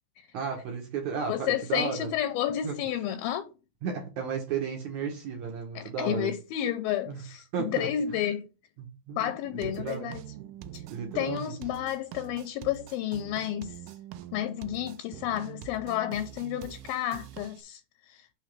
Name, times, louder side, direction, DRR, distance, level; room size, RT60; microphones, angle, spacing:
voice 1, 0.3-2.1 2.6-2.7 3.8-6.3 7.1-7.2 7.5-7.9 8.8-10.1 10.4-11.5, right 6 dB, 65° right, 2.1 m, -34 dB
voice 2, 1.3-3.5 5.8-8.5 9.2-10.2 10.7-10.8 11.2-13.8 14.3-17.8 18.1-18.3, left 11 dB, 80° left, 2.3 m, -31 dB
sound 1, 9.6-17.6, right 12 dB, 90° right, 1.9 m, -44 dB
5.8 x 3.6 x 5.9 m
omnidirectional pair, 4.4 m